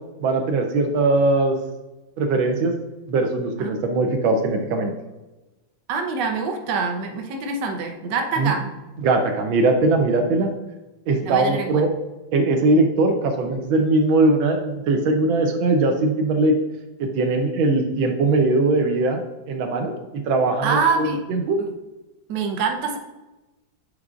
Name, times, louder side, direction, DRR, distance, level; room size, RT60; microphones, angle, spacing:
voice 1, 0.2-1.6 2.2-2.7 3.1-4.9 8.4-8.6 9.0-10.5 11.1-11.9 12.3-16.6 17.0-19.2 19.5-21.6, right 2 dB, 80° right, 3 dB, 1.5 m, -20 dB
voice 2, 5.9-8.6 11.2-11.9 20.6-21.2 21.6-21.7 22.3-23.0, right 4 dB, 65° right, 3 dB, 1.4 m, -25 dB
8.2 x 4.7 x 2.4 m, 1.1 s
omnidirectional pair, 2.2 m